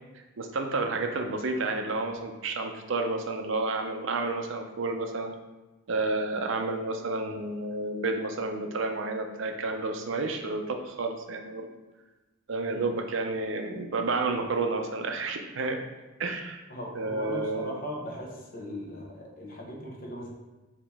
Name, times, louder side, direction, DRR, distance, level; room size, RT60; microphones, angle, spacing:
voice 1, 0.4-5.3 5.9-11.7 12.5-15.8 16.2-16.6 16.9-17.8, right 3 dB, 60° right, 4 dB, 0.5 m, -30 dB
voice 2, 16.7-20.3, left 1 dB, 40° left, -1 dB, 0.8 m, -39 dB
5.0 x 2.8 x 3.4 m, 1.1 s
head